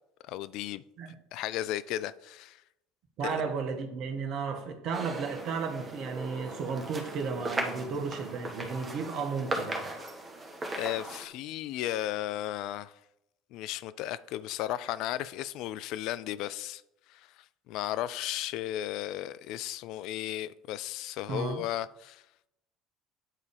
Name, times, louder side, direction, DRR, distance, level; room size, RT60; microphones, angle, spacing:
voice 1, 0.2-0.8 1.3-2.6 3.2-3.4 10.7-12.9 13.5-16.8 17.1-22.2, left 13 dB, 60° left, 0.3 m, -35 dB
voice 2, 3.2-9.9 21.3-21.6, right 5 dB, 55° right, 1.2 m, -34 dB
sound 1, 4.9-11.3, right 2 dB, 20° right, 1.7 m, -38 dB
9.1 x 4.1 x 5.0 m
figure-of-eight pair, 65°, 0 cm